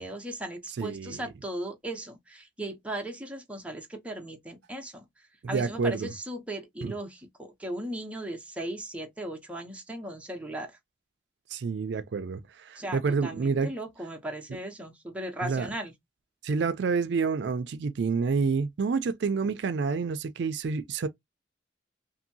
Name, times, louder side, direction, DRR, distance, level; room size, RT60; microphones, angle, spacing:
voice 1, 0.0-5.0 5.5-10.7 12.8-15.9, right 1 dB, 5° right, 0.6 m, -37 dB
voice 2, 0.8-1.2 5.4-6.1 6.8-6.9 11.5-13.7 15.4-15.7 16.4-21.1, right 5 dB, 65° right, 0.4 m, -28 dB
2.7 x 2.6 x 2.6 m
head